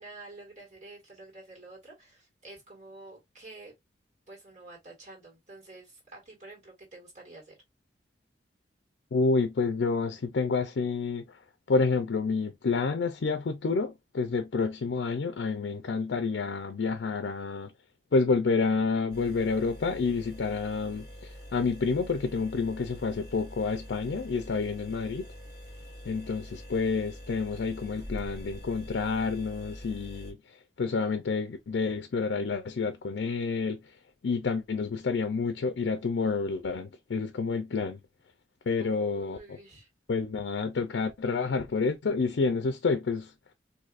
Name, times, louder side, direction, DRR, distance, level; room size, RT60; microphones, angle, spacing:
voice 1, 0.0-3.7 4.3-7.6 24.5-24.7 38.8-39.9, right 2 dB, 40° right, 1.7 m, -49 dB
voice 2, 9.1-11.4 11.7-17.7 18.1-25.2 26.1-30.4 30.8-33.8 34.2-38.0 38.7-39.4 40.1-43.3, left 4 dB, 85° left, 0.4 m, -29 dB
sound 1, 19.1-30.3, equal, 20° right, 1.2 m, -45 dB
4.0 x 2.7 x 2.4 m
head